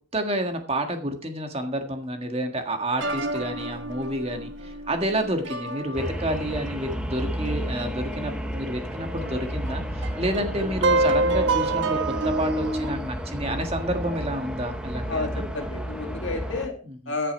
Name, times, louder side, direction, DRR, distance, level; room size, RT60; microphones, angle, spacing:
voice 1, 0.1-12.0 12.2-15.5 16.9-17.0, right 1 dB, 25° right, 5 dB, 1.7 m, -29 dB
sound 1, 3.0-8.2 8.5-8.6 9.2-13.0, right 2 dB, 55° right, 1.3 m, -28 dB
sound 2, 5.9-16.7, equal, 5° right, 1.0 m, -32 dB
voice 2, 15.1-16.7 17.1-17.3, left 3 dB, 55° left, 3 dB, 2.4 m, -30 dB
14.5 x 6.8 x 4.4 m, 0.40 s
head